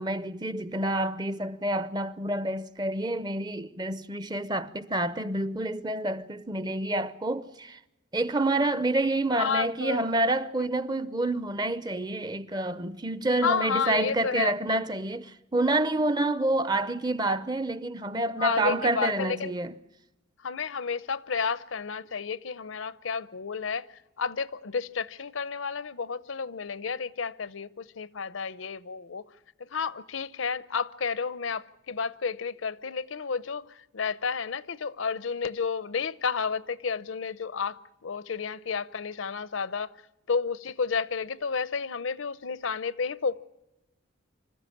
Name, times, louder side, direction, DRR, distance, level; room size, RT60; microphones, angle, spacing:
voice 1, 0.0-7.8 8.1-19.7, right 2 dB, 20° right, 0.6 m, -28 dB
voice 2, 9.3-10.0 13.4-14.5 18.4-19.5 20.4-23.9 24.2-29.3 29.6-39.9 40.3-43.4, left 5 dB, 75° left, 0.7 m, -31 dB
25.5 x 14.0 x 8.5 m
head